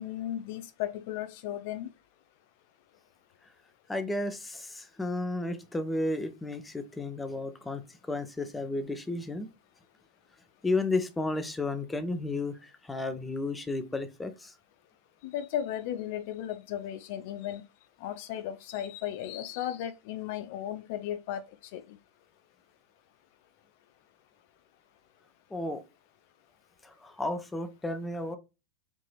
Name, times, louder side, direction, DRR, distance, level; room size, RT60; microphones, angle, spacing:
voice 1, 0.0-1.9 15.2-17.6 18.0-21.4 21.7-21.8, left 11 dB, 50° left, 0.4 m, -35 dB
voice 2, 3.9-7.8 8.1-9.5 10.6-14.5 25.5-25.8 26.8-28.4, left 2 dB, 10° left, 0.7 m, -33 dB
5.1 x 2.9 x 3.2 m
figure-of-eight pair, 90°, 0 cm